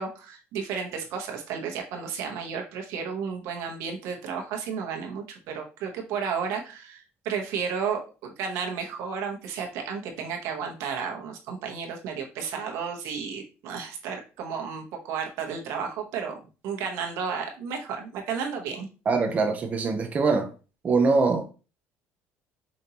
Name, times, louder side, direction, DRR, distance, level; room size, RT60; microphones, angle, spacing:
voice 1, 0.0-16.3 16.6-18.9, right 6 dB, 80° right, 1.1 m, -33 dB
voice 2, 19.1-20.5 20.8-21.5, right 4 dB, 30° right, 0.6 m, -23 dB
5.2 x 2.7 x 2.8 m
cardioid pair, 125°, 5 cm